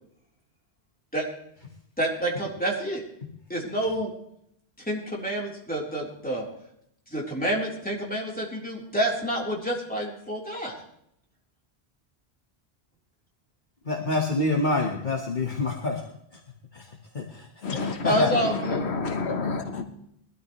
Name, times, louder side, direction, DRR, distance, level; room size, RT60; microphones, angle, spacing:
voice 1, 2.0-3.0 3.5-4.1 4.9-6.4 7.1-10.8 18.0-18.8, right 1 dB, 10° left, -3 dB, 3.7 m, -28 dB
voice 2, 13.9-16.0 16.7-16.8 17.2-17.5 17.7-18.3, left 2 dB, 50° left, 1 dB, 1.6 m, -26 dB
voice 3, 17.6-18.0 18.7-19.8, left 4 dB, 85° left, 6 dB, 1.4 m, -29 dB
21.0 x 13.0 x 3.2 m, 0.74 s
omnidirectional pair, 1.1 m